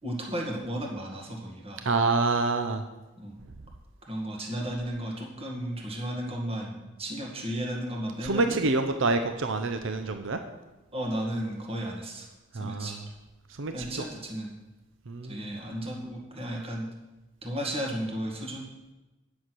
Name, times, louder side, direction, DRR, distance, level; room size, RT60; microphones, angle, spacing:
voice 1, 0.0-1.8 3.2-3.4 4.1-8.6 10.9-12.3 12.5-13.0 13.7-14.5 15.2-16.9 17.4-18.7, right 1 dB, 30° right, -1 dB, 1.9 m, -34 dB
voice 2, 1.9-2.8 8.2-10.4 12.6-12.9 13.6-13.7 15.1-15.4, right 3 dB, 65° right, 7 dB, 0.7 m, -26 dB
10.0 x 6.5 x 6.2 m, 1.1 s
head